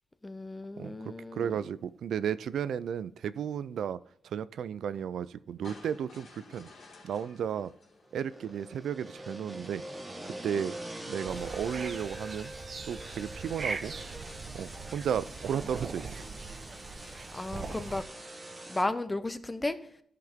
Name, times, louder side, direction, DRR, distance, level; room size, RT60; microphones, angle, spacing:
voice 1, 0.2-1.6 17.1-18.1 18.7-19.8, left 2 dB, 15° left, 12 dB, 0.6 m, -34 dB
voice 2, 0.8-6.7 7.0-7.7 8.1-9.8 10.2-10.8 11.1-12.5 12.9-13.9 14.5-16.2, right 8 dB, 85° right, 16 dB, 0.3 m, -34 dB
sound 1, 5.6-8.9, left 3 dB, 60° left, 2.6 m, -53 dB
sound 2, 8.0-18.8, right 1 dB, 15° right, 1.4 m, -44 dB
sound 3, 11.3-18.0, right 4 dB, 40° right, 0.7 m, -41 dB
13.0 x 5.8 x 3.6 m, 0.67 s
wide cardioid pair, 150°, 0 cm